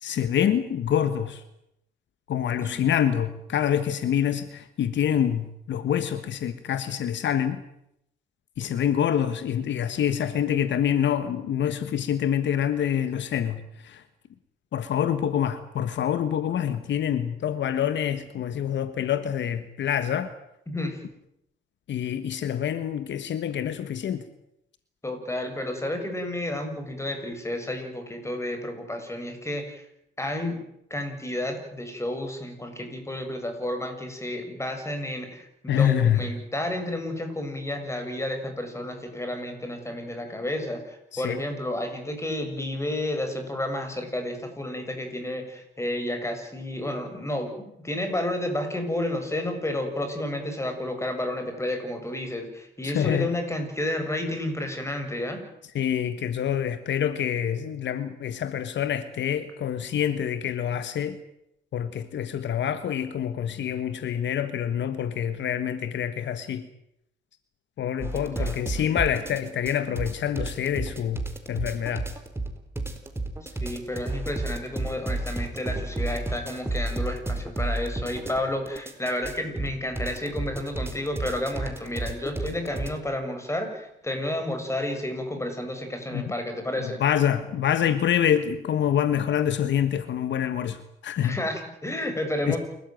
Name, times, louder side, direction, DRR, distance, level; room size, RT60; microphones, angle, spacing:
voice 1, 0.0-1.4 2.3-7.6 8.6-14.0 14.7-20.3 21.9-24.2 35.7-36.3 41.1-41.4 52.8-53.3 55.7-61.2 61.7-66.6 67.8-72.1 86.1-86.2 86.8-91.4 92.5-92.6, left 9 dB, 65° left, 12 dB, 1.5 m, -26 dB
voice 2, 20.7-21.0 25.0-29.8 30.2-30.6 30.9-55.4 68.1-68.6 73.4-87.0 91.2-92.6, left 1 dB, 15° left, 6 dB, 7.3 m, -31 dB
sound 1, 68.0-82.9, right 2 dB, 10° right, 4.4 m, -31 dB
29.0 x 14.5 x 9.3 m, 0.81 s
cardioid pair, 90°, 20 cm